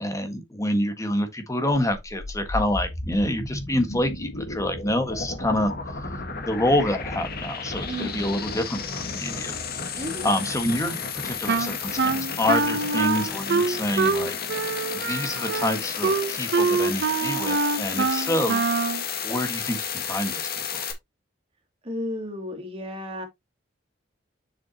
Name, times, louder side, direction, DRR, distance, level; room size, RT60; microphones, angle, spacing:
voice 1, 0.0-6.0 6.4-9.5 9.9-14.4 14.9-18.6 19.2-20.8, left 1 dB, 15° left, 1.6 m, -27 dB
sound 1, 1.8-20.9, left 5 dB, 55° left, 1.7 m, -32 dB
voice 2, 7.9-8.6 10.0-10.3 21.8-23.3, left 1 dB, 30° right, 2.7 m, -33 dB
Wind instrument woodwind instrument, 11.5-19.0, right 4 dB, 60° right, 0.7 m, -25 dB
7.5 x 6.1 x 2.9 m
head